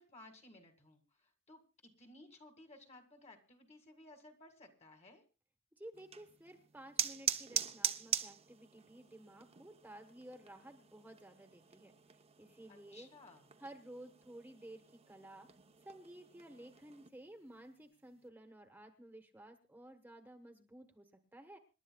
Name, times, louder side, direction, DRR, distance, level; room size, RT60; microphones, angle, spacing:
voice 1, 0.0-5.2 12.7-13.5, left 2 dB, 35° left, 5 dB, 2.1 m, -58 dB
voice 2, 5.7-11.9 12.4-13.1 13.6-15.5 15.8-21.6, right 1 dB, 10° right, 5 dB, 1.2 m, -54 dB
sound 1, 5.9-17.1, right 8 dB, 30° right, 0.8 m, -43 dB
27.0 x 11.5 x 2.3 m, 0.31 s
head